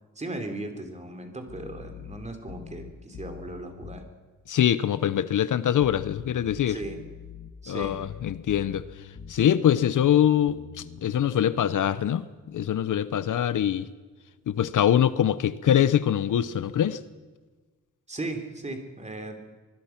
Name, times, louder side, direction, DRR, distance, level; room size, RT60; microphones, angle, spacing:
voice 1, 0.1-4.0 6.7-7.0 7.6-8.0 13.3-13.4 18.1-19.4, right 2 dB, 20° right, 3.2 m, -37 dB
sound 1, 1.5-4.1 5.8-9.4 10.5-12.1, left 6 dB, 50° left, 1.4 m, -44 dB
voice 2, 4.5-6.8 7.7-8.9 9.3-13.9 14.5-17.0, left 10 dB, 65° left, 0.9 m, -23 dB
24.5 x 20.5 x 5.9 m
wide cardioid pair, 155°, 33 cm